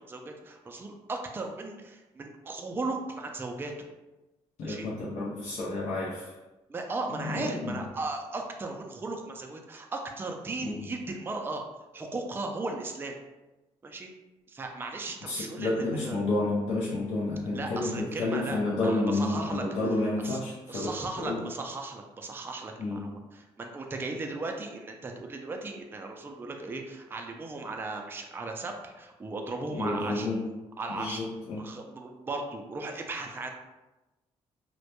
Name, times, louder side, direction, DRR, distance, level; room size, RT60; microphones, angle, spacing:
voice 1, 0.0-3.7 4.6-4.9 6.7-11.6 11.9-13.2 13.8-14.1 14.5-16.2 17.5-19.6 20.2-20.4 20.7-23.1 23.6-30.3 30.8-31.2 31.6-33.5, right 3 dB, 20° right, 2 dB, 0.3 m, -36 dB
voice 2, 4.6-6.4 7.1-7.8 10.6-10.9 15.2-21.5 22.8-23.3 29.7-30.6 30.9-31.7, left 2 dB, 70° left, -5 dB, 0.5 m, -30 dB
2.1 x 2.1 x 2.8 m, 1.0 s
cardioid pair, 75°, 12 cm